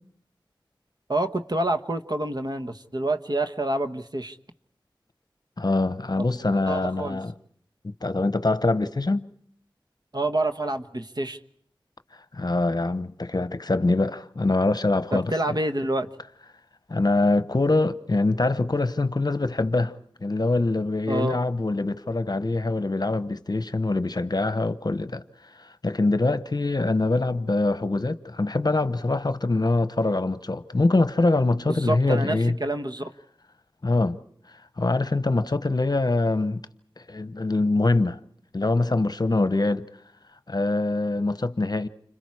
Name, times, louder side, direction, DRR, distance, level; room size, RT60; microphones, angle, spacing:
voice 1, 1.1-4.4 6.7-7.2 10.1-11.4 15.1-16.1 21.1-21.4 31.7-33.1, right 1 dB, 50° right, 1.4 m, -27 dB
voice 2, 5.6-7.3 7.8-9.3 12.3-15.6 16.9-19.9 20.2-25.2 25.6-32.6 33.8-34.2 34.8-36.6 37.1-38.2 38.5-39.9 40.5-41.9, left 2 dB, 50° left, 0.9 m, -24 dB
29.5 x 26.0 x 4.8 m
wide cardioid pair, 45°, 9 cm